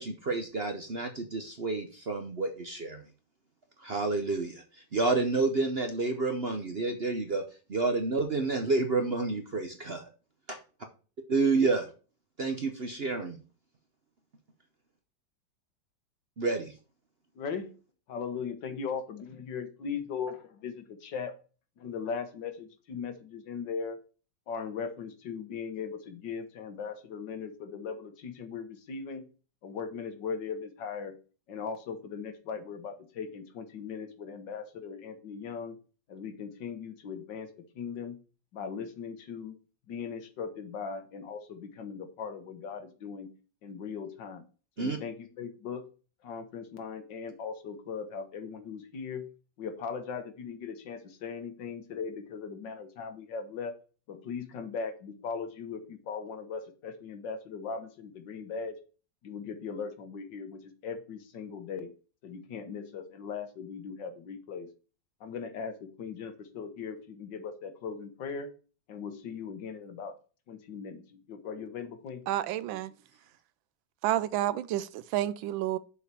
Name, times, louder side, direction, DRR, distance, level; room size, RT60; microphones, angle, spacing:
voice 1, 0.0-3.0 3.8-7.4 7.7-10.1 10.5-10.6 11.3-11.9 12.4-13.4 16.4-16.7 44.8-45.0, right 3 dB, 45° right, 0.8 m, -29 dB
voice 2, 17.4-17.7 18.1-21.4 21.8-24.0 24.5-29.2 29.6-31.2 31.5-35.8 36.1-38.2 38.5-39.6 39.9-43.3 43.6-44.4 44.8-45.9 46.2-49.3 49.6-53.7 54.1-58.8 59.2-61.9 62.2-64.7 65.2-68.5 68.9-70.2 70.5-72.2, left 6 dB, 70° left, 1.8 m, -39 dB
voice 3, 72.3-72.9 74.0-75.8, right 13 dB, 85° right, 1.4 m, -30 dB
7.1 x 4.5 x 6.8 m
omnidirectional pair, 2.1 m